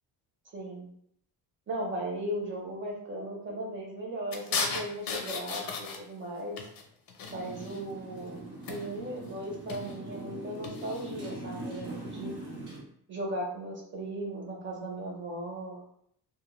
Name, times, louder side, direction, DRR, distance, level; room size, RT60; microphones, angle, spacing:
voice 1, 0.5-0.9 1.7-5.6 6.0-6.6 7.3-12.4 13.1-15.8, right 1 dB, 30° right, -2 dB, 0.7 m, -37 dB
sound 1, 4.3-6.3 6.6-7.8 8.6-9.1 9.5-10.0 10.6-11.1, left 5 dB, 60° left, 0.5 m, -36 dB
Motorcycle, 7.3-12.8, right 1 dB, 50° right, 1.0 m, -42 dB
2.4 x 2.1 x 3.0 m, 0.67 s
cardioid pair, 155°, 40 cm